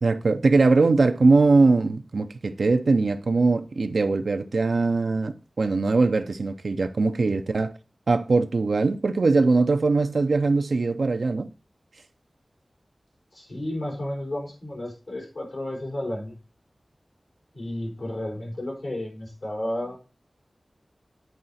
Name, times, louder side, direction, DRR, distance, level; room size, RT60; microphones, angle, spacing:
voice 1, 0.0-7.7 8.1-11.5, right 3 dB, 85° right, 0.6 m, -21 dB
voice 2, 13.3-16.4 17.5-20.0, left 1 dB, 85° left, 3.9 m, -32 dB
9.2 x 4.8 x 4.1 m
wide cardioid pair, 65°, 0 cm